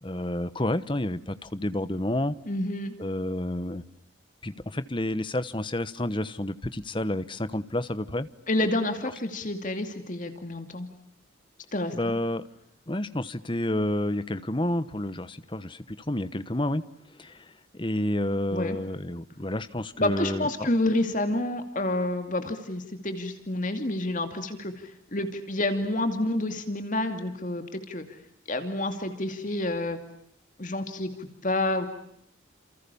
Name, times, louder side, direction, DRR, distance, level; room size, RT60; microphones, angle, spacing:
voice 1, 0.0-2.4 3.0-3.8 4.4-8.3 11.9-12.4 12.9-16.8 17.2-20.7, left 1 dB, 25° left, 14 dB, 1.1 m, -30 dB
voice 2, 2.5-2.9 8.5-10.9 11.7-12.1 18.5-18.8 20.0-28.2 28.5-30.0 30.6-31.9, left 1 dB, 40° left, 7 dB, 2.6 m, -29 dB
29.5 x 28.0 x 7.0 m, 0.73 s
head